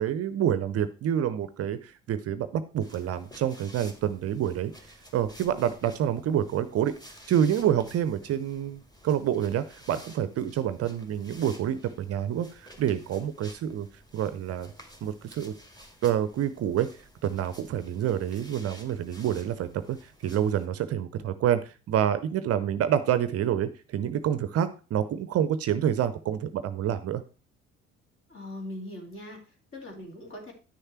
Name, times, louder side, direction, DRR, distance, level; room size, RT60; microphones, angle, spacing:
voice 1, 0.0-4.7 5.1-6.9 7.3-13.9 14.1-14.7 15.0-15.5 16.0-16.9 17.2-27.2, right 10 dB, 40° right, 13 dB, 0.7 m, -27 dB
sound 1, 2.8-20.7, equal, 10° left, 2.3 m, -52 dB
voice 2, 28.3-30.5, left 1 dB, 35° left, 2 dB, 2.9 m, -41 dB
9.9 x 6.6 x 4.4 m, 0.33 s
figure-of-eight pair, 55°, 36 cm